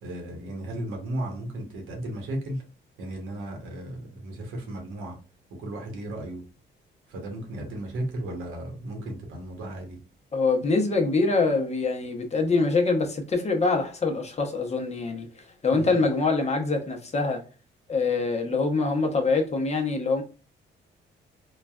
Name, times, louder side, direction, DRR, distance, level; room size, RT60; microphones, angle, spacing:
voice 1, 0.0-2.6 3.0-5.2 5.6-6.4 7.1-10.0 15.7-15.9, right 1 dB, 90° right, 1.0 m, -35 dB
voice 2, 10.3-15.3 15.6-17.4 17.9-20.2, left 3 dB, 35° left, 0.7 m, -24 dB
3.1 x 2.3 x 2.3 m
cardioid pair, 90°, 20 cm